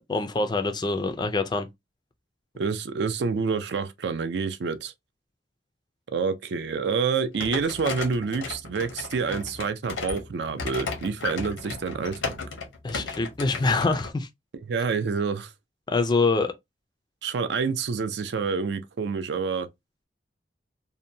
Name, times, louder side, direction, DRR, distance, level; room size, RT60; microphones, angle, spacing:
voice 1, 0.1-1.7 12.8-14.3 15.9-16.5, left 3 dB, 25° left, 0.3 m, -25 dB
voice 2, 2.6-4.9 6.1-12.4 14.7-15.5 17.2-19.7, right 5 dB, 60° right, 0.4 m, -28 dB
sound 1, 7.3-14.1, left 4 dB, 90° left, 0.8 m, -35 dB
2.7 x 2.1 x 2.6 m
head